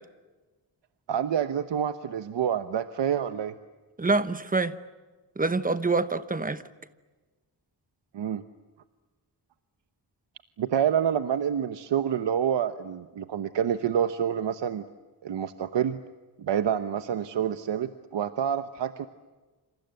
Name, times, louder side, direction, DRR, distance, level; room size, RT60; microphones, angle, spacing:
voice 1, 1.1-3.5 8.1-8.4 10.6-14.8 15.2-16.0 16.4-19.1, right 9 dB, 85° right, 1.1 m, -27 dB
voice 2, 4.0-4.7 5.4-6.6, right 3 dB, 20° right, 1.0 m, -26 dB
28.0 x 27.0 x 7.9 m
wide cardioid pair, 155°, 42 cm